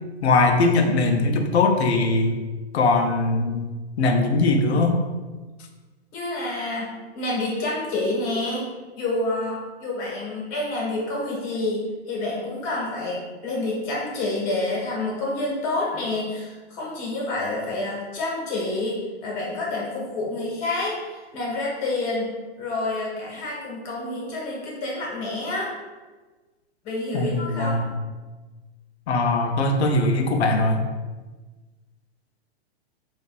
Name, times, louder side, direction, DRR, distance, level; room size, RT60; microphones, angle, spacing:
voice 1, 0.2-2.4 2.7-3.7 4.0-5.0 27.1-27.9 29.1-30.8, left 2 dB, 80° left, 4 dB, 0.7 m, -20 dB
voice 2, 6.1-6.9 7.1-8.7 8.9-22.3 22.6-25.7 26.8-27.8, left 2 dB, 40° left, -3 dB, 1.5 m, -28 dB
5.3 x 2.6 x 2.4 m, 1.3 s
hypercardioid pair, 130°, 33 cm